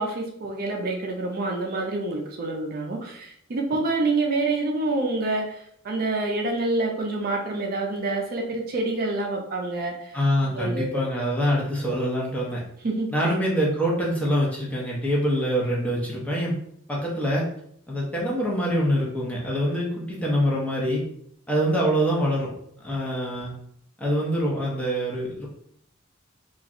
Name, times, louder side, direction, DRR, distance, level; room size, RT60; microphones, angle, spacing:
voice 1, 0.0-10.2 10.5-11.1 12.8-13.3, right 2 dB, 45° right, 1 dB, 0.4 m, -27 dB
voice 2, 10.1-12.6 13.1-16.5 16.9-17.4 17.9-21.0 21.5-22.5 22.8-23.5 24.0-25.5, equal, 5° left, -4 dB, 0.6 m, -25 dB
3.0 x 2.3 x 2.5 m, 0.68 s
head